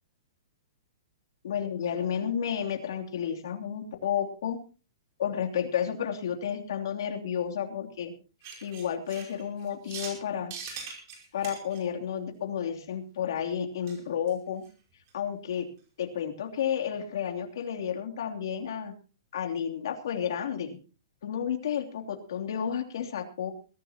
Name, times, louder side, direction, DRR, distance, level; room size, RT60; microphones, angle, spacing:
voice 1, 1.4-4.6 5.2-8.1 8.6-10.5 11.3-14.6 15.1-15.7 16.0-18.9 19.3-20.8 21.2-23.5, left 8 dB, 60° left, 3 dB, 3.0 m, -31 dB
sound 1, 8.4-10.2 10.5-11.8 13.9-14.0 14.3-14.4 14.6-14.7 15.1-15.2, right 6 dB, 35° right, 5.2 m, -41 dB
22.0 x 15.0 x 2.9 m, 0.34 s
hypercardioid pair, 175°, 2 cm